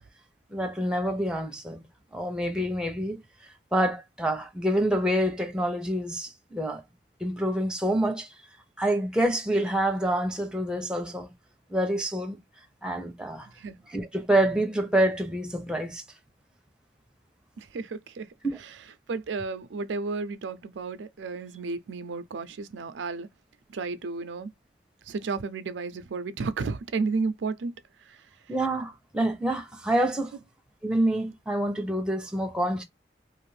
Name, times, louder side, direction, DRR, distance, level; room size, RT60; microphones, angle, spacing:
voice 1, 0.5-1.9 2.1-3.2 3.7-6.8 7.2-8.3 8.8-11.3 11.7-12.4 12.8-13.5 13.9-16.0 18.4-18.6 28.5-30.3 30.8-32.8, right 1 dB, 5° right, 0.6 m, -27 dB
voice 2, 17.6-18.3 19.1-23.3 23.7-24.5 25.1-27.7, right 4 dB, 90° right, 0.4 m, -32 dB
2.5 x 2.5 x 3.2 m
head